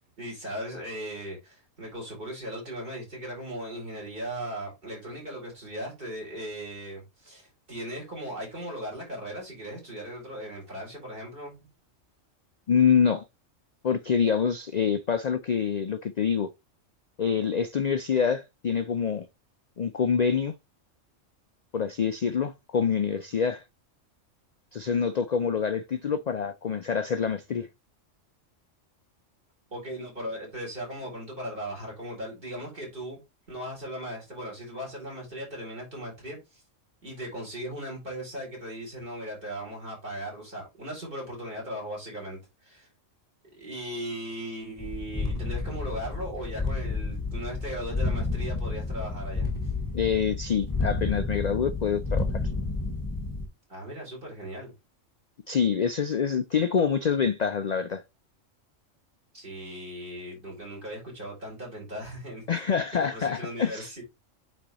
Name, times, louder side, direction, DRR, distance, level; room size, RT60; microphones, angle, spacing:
voice 1, 0.2-11.7 29.7-33.2 33.5-36.6 37.0-42.9 43.5-49.5 53.7-54.7 59.3-62.4 62.9-64.0, equal, 40° right, 4.2 m, -38 dB
voice 2, 12.7-13.2 13.8-16.5 17.2-19.3 19.8-20.5 21.7-23.6 24.7-27.7 49.9-52.4 55.5-58.0 62.5-63.9, left 6 dB, 70° left, 0.4 m, -26 dB
sound 1, 44.8-53.5, left 3 dB, 20° left, 0.9 m, -30 dB
8.7 x 4.2 x 3.0 m
omnidirectional pair, 1.3 m